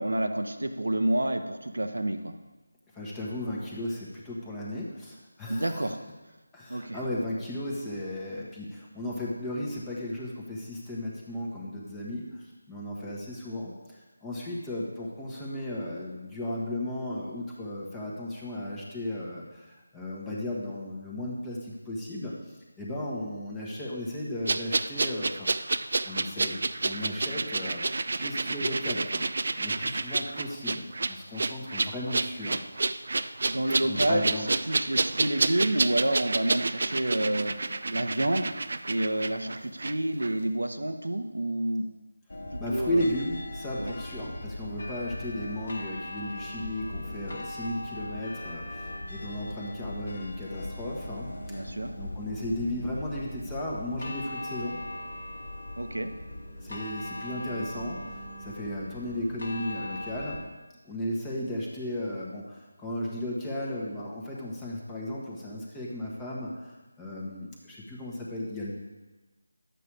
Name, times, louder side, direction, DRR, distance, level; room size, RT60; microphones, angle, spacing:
voice 1, 0.0-2.3 5.5-6.0 6.7-7.0 33.4-34.3 34.7-37.5 37.9-38.5 38.8-41.9 42.7-43.0 43.8-44.0 51.5-51.9 55.8-56.1, right 1 dB, 80° right, 8 dB, 1.1 m, -28 dB
voice 2, 2.9-5.9 6.5-25.5 26.0-27.8 28.2-29.2 29.5-32.9 33.8-34.5 42.6-51.7 52.0-54.8 56.6-60.4 60.8-68.7, left 1 dB, 10° left, -5 dB, 1.5 m, -35 dB
sound 1, 24.5-39.9 40.2-40.3, right 3 dB, 55° right, 0.4 m, -29 dB
sound 2, 42.3-60.4, left 1 dB, 65° left, 1.8 m, -39 dB
11.0 x 8.2 x 4.8 m, 1.2 s
figure-of-eight pair, 165°, 0 cm